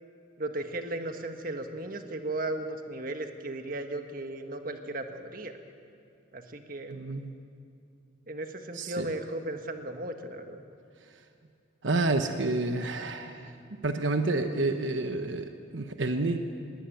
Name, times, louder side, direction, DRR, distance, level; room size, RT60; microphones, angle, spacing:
voice 1, 0.4-5.6 6.3-7.0 8.3-10.6, right 2 dB, 50° right, 6 dB, 1.5 m, -36 dB
voice 2, 6.9-7.3 8.7-9.1 11.8-13.5 13.8-16.4, right 2 dB, 80° right, 7 dB, 1.1 m, -29 dB
20.0 x 19.0 x 9.2 m, 2.5 s
head